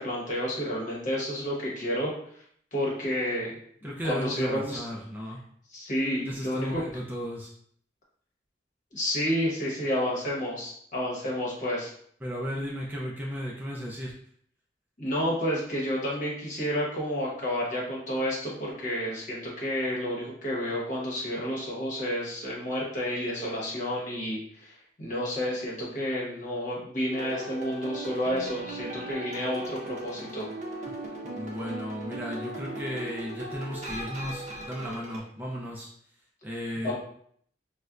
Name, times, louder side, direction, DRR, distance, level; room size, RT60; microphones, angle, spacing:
voice 1, 0.0-2.1 2.7-4.8 5.7-6.8 8.9-11.9 15.0-24.7 25.0-30.5 36.8-37.0, equal, 45° left, -4 dB, 1.0 m, -30 dB
voice 2, 3.8-5.4 6.2-7.5 12.2-14.2 31.3-35.9 36.4-37.0, equal, 10° right, -3 dB, 0.4 m, -35 dB
sound 1, 27.1-35.2, right 2 dB, 45° right, 0.7 m, -38 dB
4.0 x 2.1 x 2.3 m, 0.63 s
head